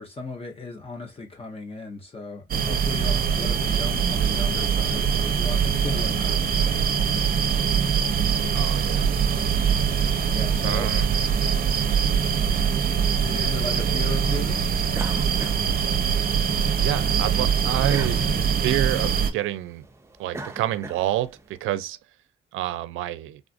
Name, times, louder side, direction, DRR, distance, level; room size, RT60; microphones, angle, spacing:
voice 1, 0.0-6.5 10.3-10.9 13.0-14.7, left 3 dB, 30° left, 0.8 m, -36 dB
sound 1, 2.5-19.3, right 7 dB, 50° right, 0.7 m, -23 dB
voice 2, 8.5-9.1 10.6-11.1 16.8-19.8 20.2-22.0 22.5-23.4, right 13 dB, 85° right, 0.4 m, -28 dB
sound 2, 14.9-16.5 16.9-21.5, right 2 dB, 15° right, 0.6 m, -38 dB
3.5 x 2.4 x 2.4 m
cardioid pair, 90°, 20 cm